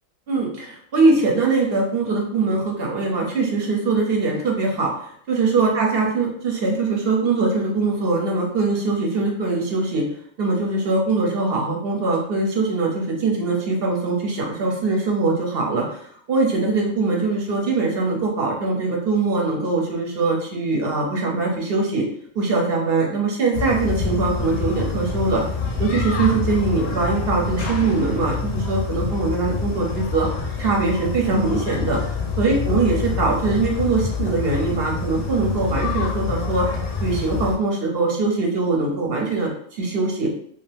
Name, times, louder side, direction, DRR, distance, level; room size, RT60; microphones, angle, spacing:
voice 1, 0.3-10.1 10.4-22.1 22.3-25.4 25.8-30.3 30.6-32.0 32.4-36.7 37.0-40.3, right 3 dB, 60° right, -1 dB, 0.8 m, -22 dB
sound 1, 23.5-37.5, left 4 dB, 55° left, 0.6 m, -26 dB
2.5 x 2.4 x 3.3 m, 0.63 s
omnidirectional pair, 1.3 m